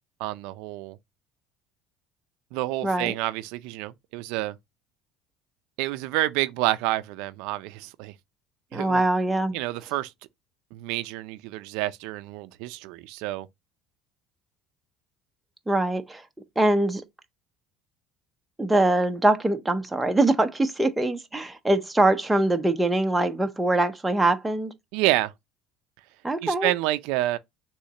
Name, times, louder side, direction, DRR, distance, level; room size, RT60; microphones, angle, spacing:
voice 1, 0.2-1.0 2.5-4.5 5.8-8.1 8.7-9.0 9.5-10.1 10.7-13.5 24.9-25.3 26.4-27.4, right 16 dB, 80° right, 0.4 m, -28 dB
voice 2, 2.8-3.1 8.7-9.5 15.7-16.2 16.6-17.0 18.6-24.7 26.2-26.7, right 2 dB, 5° right, 0.6 m, -23 dB
6.4 x 3.0 x 2.8 m
cardioid pair, 145°, 0 cm